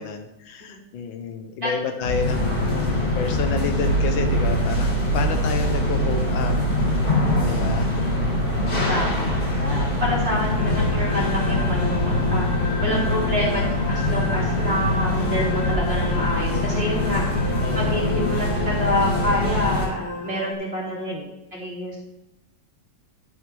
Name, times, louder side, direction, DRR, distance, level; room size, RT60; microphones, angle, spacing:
voice 1, 0.0-6.6 7.4-7.9 9.9-10.4 12.9-13.4 17.6-18.1 20.8-21.3, left 5 dB, 75° left, 6 dB, 1.6 m, -31 dB
sound 1, 2.0-19.9, left 2 dB, 50° left, 3.6 m, -24 dB
sound 2, 3.8-20.1, right 6 dB, 70° right, 1.5 m, -30 dB
voice 2, 8.9-21.1 21.5-22.0, equal, 30° right, -4 dB, 3.1 m, -27 dB
sound 3, 10.5-20.5, left 2 dB, 15° left, 0.8 m, -33 dB
12.0 x 7.4 x 3.4 m, 0.93 s
omnidirectional pair, 2.2 m